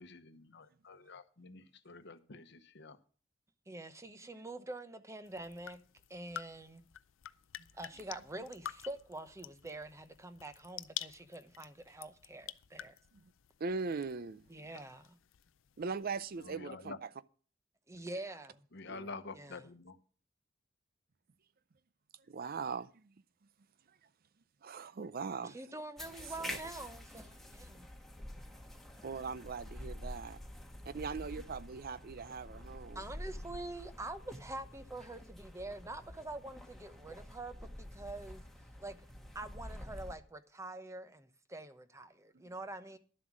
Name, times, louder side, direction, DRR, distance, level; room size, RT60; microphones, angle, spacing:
voice 1, 0.0-3.0 16.4-17.0 18.7-19.9, left 3 dB, 60° left, 1.0 m, -48 dB
voice 2, 3.7-5.8 6.1-6.8 7.8-12.9 14.5-15.2 17.9-18.5 19.4-19.6 25.4-27.9 32.9-38.4 38.8-39.0 39.3-43.0, right 2 dB, 15° right, 0.8 m, -45 dB
sound 1, 5.2-16.5, left 11 dB, 80° left, 0.5 m, -49 dB
voice 3, 13.6-14.4 15.8-16.9 18.9-19.1 22.3-23.0 24.6-25.6 26.4-26.6 29.0-30.4 30.9-33.0, right 4 dB, 50° right, 0.5 m, -40 dB
sound 2, 26.0-40.2, left 1 dB, ahead, 1.4 m, -48 dB
11.5 x 7.6 x 6.1 m
head